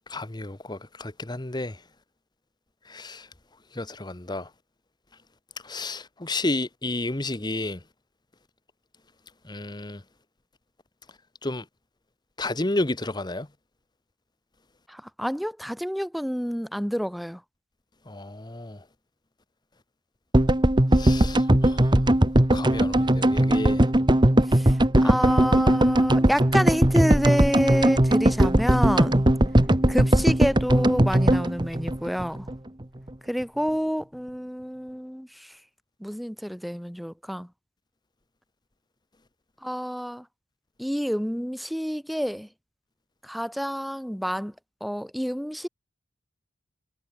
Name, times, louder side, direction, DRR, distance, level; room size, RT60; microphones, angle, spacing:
voice 1, 0.1-1.8 2.9-3.2 3.8-4.5 5.6-7.8 9.5-10.0 11.4-11.6 12.4-13.5 18.1-18.8 20.9-21.8 22.5-23.8, left 2 dB, 20° left, 1.2 m, -31 dB
voice 2, 14.9-17.4 24.5-24.7 25.0-29.2 29.9-32.4 33.3-35.3 36.0-37.5 39.6-40.2 40.8-42.5 43.2-44.5 44.8-45.7, equal, ahead, 1.4 m, -28 dB
sound 1, 20.3-32.6 32.8-32.9 33.1-33.2, right 1 dB, 20° right, 1.3 m, -19 dB
head